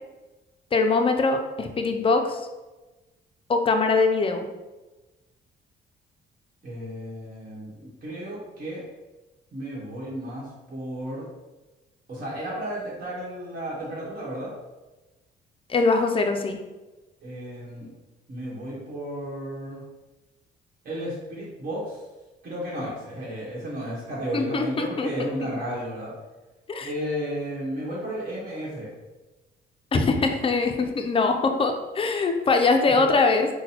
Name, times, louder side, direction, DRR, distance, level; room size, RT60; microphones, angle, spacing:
voice 1, 0.7-2.4 3.5-4.4 15.7-16.6 24.3-25.1 25.4-25.5 26.7-26.9 29.9-33.5, left 3 dB, 30° left, 5 dB, 0.4 m, -22 dB
voice 2, 6.6-8.8 9.5-11.2 12.1-14.5 17.2-17.9 18.3-19.8 20.8-22.0 22.4-26.1 26.8-28.9 32.9-33.1, equal, 45° right, -6 dB, 1.2 m, -33 dB
3.8 x 2.2 x 2.8 m, 1.1 s
cardioid pair, 90°, 20 cm